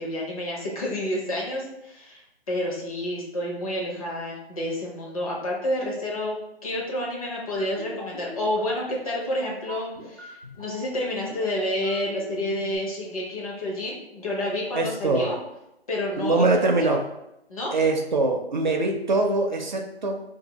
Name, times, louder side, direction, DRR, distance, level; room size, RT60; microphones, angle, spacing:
voice 1, 0.0-6.4 6.6-15.4 15.9-16.5 17.5-17.7, left 1 dB, 35° left, -3 dB, 0.9 m, -29 dB
sound 1, 7.6-12.8, right 1 dB, 5° left, 0.6 m, -41 dB
voice 2, 14.7-15.3 16.2-17.1 17.7-20.2, right 2 dB, 45° right, 3 dB, 0.5 m, -23 dB
2.6 x 2.6 x 4.0 m, 0.86 s
figure-of-eight pair, 160°, 32 cm